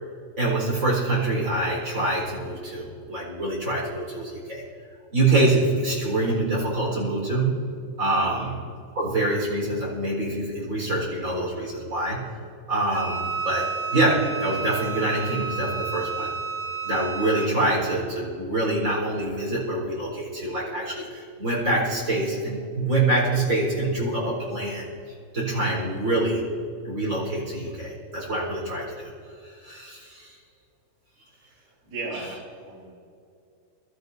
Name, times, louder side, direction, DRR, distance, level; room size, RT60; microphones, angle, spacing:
voice 1, 0.4-4.6 5.1-7.5 8.0-8.6 8.9-12.2 12.7-16.3 16.8-24.8 25.3-26.4 26.8-29.1 29.4-30.3 32.1-32.2, right 2 dB, 20° right, -4 dB, 4.4 m, -25 dB
voice 2, 8.2-8.6 31.4-32.3 32.6-32.9, right 3 dB, 65° right, -6 dB, 5.4 m, -37 dB
Wind instrument woodwind instrument, 12.9-17.5, right 5 dB, 85° right, 0.9 m, -31 dB
23.5 x 13.5 x 2.7 m, 2.4 s
omnidirectional pair, 4.6 m